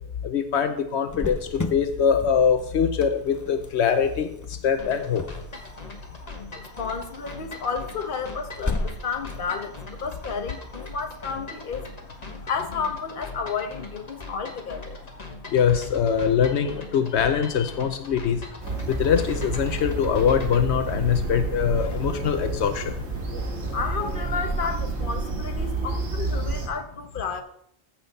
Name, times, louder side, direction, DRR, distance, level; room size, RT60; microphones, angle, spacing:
voice 1, 0.2-4.3 4.6-5.2 15.5-18.4 18.9-22.9, left 7 dB, 80° left, 1.0 m, -23 dB
Cricket, 1.1-12.5, left 2 dB, 20° left, 0.5 m, -37 dB
sound 1, 4.8-20.7, left 2 dB, 40° left, 1.4 m, -40 dB
voice 2, 6.5-11.9 12.5-15.0 23.7-27.4, left 5 dB, 55° left, 1.1 m, -32 dB
sound 2, 18.6-26.7, right 3 dB, 85° right, 1.7 m, -30 dB
14.5 x 5.8 x 4.0 m
omnidirectional pair, 1.1 m